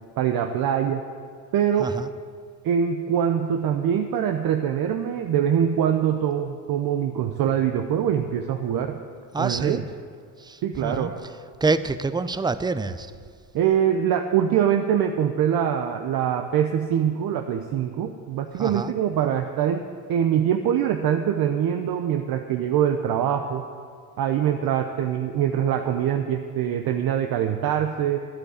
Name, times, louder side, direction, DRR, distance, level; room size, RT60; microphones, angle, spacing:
voice 1, 0.2-1.0 1.5-1.9 2.6-9.0 9.4-9.8 10.6-11.1 13.5-19.8 20.1-23.6 24.2-28.2, right 9 dB, 65° right, 5 dB, 0.8 m, -23 dB
voice 2, 9.3-9.9 10.4-11.1 11.6-13.1 18.5-18.9, right 3 dB, 10° right, 13 dB, 0.5 m, -26 dB
10.5 x 8.7 x 8.6 m, 2.1 s
cardioid pair, 90°, 39 cm